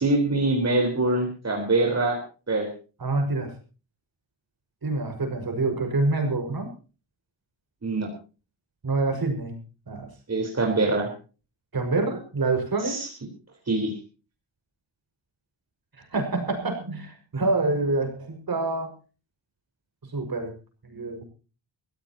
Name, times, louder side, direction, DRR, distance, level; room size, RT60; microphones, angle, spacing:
voice 1, 0.0-2.2 2.5-2.7 7.8-8.1 10.3-11.1 12.8-13.1 13.7-13.9, right 2 dB, 35° right, 1 dB, 4.3 m, -24 dB
voice 2, 3.0-3.5 4.8-6.7 8.8-9.6 9.9-10.1 11.7-13.0 16.0-18.9 20.1-20.5 20.8-21.2, right 3 dB, 55° right, 5 dB, 5.7 m, -26 dB
24.5 x 16.0 x 2.9 m, 0.35 s
wide cardioid pair, 135°, 44 cm